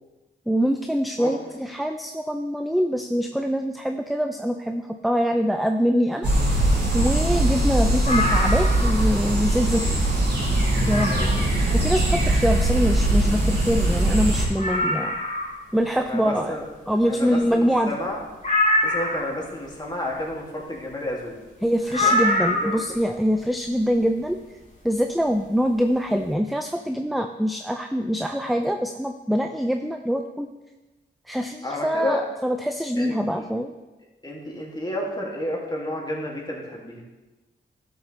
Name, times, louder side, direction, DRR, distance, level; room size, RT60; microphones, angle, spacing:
voice 1, 0.5-6.3 6.9-10.0 10.9-11.3 11.7-15.1 15.7-16.6 16.9-18.0 21.6-24.4 24.8-30.5 31.3-33.7, equal, ahead, 6 dB, 0.5 m, -24 dB
sound 1, 6.2-14.5, right 1 dB, 55° right, 3.4 m, -21 dB
sound 2, 8.0-9.1 9.5-9.6 10.1-10.2 10.9-11.5 13.3-13.4 13.5-13.6 14.1-14.2 14.6-15.6 18.4-19.4 21.9-22.9 24.2-24.3, left 1 dB, 40° left, 2.6 m, -24 dB
voice 2, 16.0-16.6 17.0-18.2 18.8-21.4 21.9-22.3 22.6-22.7 31.6-32.2 33.0-33.4 34.2-37.0, left 1 dB, 20° left, -3 dB, 2.8 m, -31 dB
12.5 x 7.1 x 3.5 m, 1.1 s
cardioid pair, 70°, 20 cm